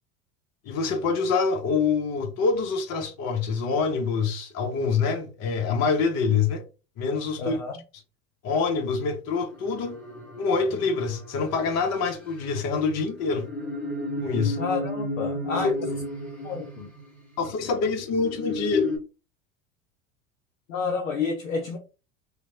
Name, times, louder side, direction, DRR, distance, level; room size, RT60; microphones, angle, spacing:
voice 1, 0.6-6.6 7.0-7.6 8.4-10.0 10.4-13.5 14.2-14.6 15.5-15.9 17.4-18.9, left 4 dB, 40° left, 0.8 m, -25 dB
voice 2, 7.4-7.7 14.6-15.7 16.4-16.9 20.7-21.8, left 4 dB, 80° left, 0.6 m, -29 dB
sound 1, 9.5-17.4 18.0-19.0, left 2 dB, 5° left, 1.2 m, -34 dB
3.0 x 2.1 x 2.7 m
figure-of-eight pair, 75°, 40 cm